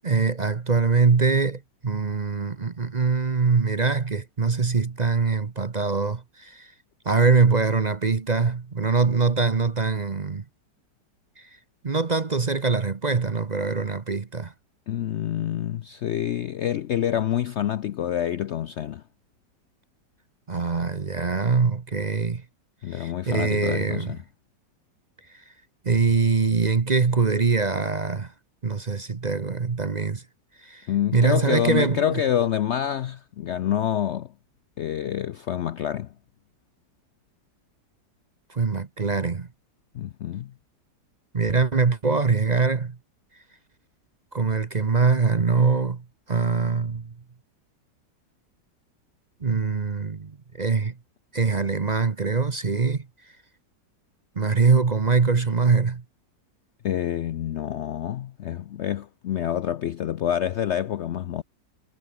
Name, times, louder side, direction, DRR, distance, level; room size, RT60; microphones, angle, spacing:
voice 1, 0.0-6.7 7.0-10.4 11.4-11.5 11.8-14.5 20.5-22.4 22.9-24.1 25.3-25.4 25.8-28.3 28.6-30.2 30.6-30.9 31.1-32.2 38.5-39.5 41.3-43.0 44.3-47.1 49.4-51.0 51.3-53.1 54.4-56.0, right 4 dB, 30° right, 0.8 m, -23 dB
voice 2, 14.9-19.0 22.8-24.2 30.9-34.3 34.8-36.1 39.9-40.5 56.8-61.4, left 10 dB, 90° left, 0.6 m, -27 dB
omnidirectional pair, 1.9 m